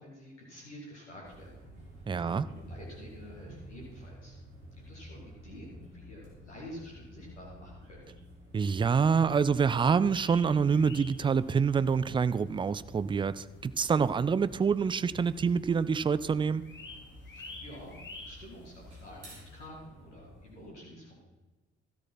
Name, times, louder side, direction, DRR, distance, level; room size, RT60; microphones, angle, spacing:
voice 1, 0.0-1.6 2.2-4.4 4.9-8.1 17.2-21.2, equal, 85° left, -5 dB, 2.0 m, -49 dB
sound 1, 1.2-20.7, equal, 75° right, 2.6 m, -51 dB
voice 2, 2.1-2.5 8.5-16.6, right 6 dB, 15° right, 16 dB, 0.4 m, -26 dB
sound 2, 10.1-11.8 12.2-12.3 12.8-12.9 13.6-13.7 13.9-14.0 14.2-15.4 15.7-16.0 16.3-19.7, left 3 dB, 30° left, 3.3 m, -49 dB
13.0 x 7.2 x 5.8 m, 1.1 s
figure-of-eight pair, 40°, 34 cm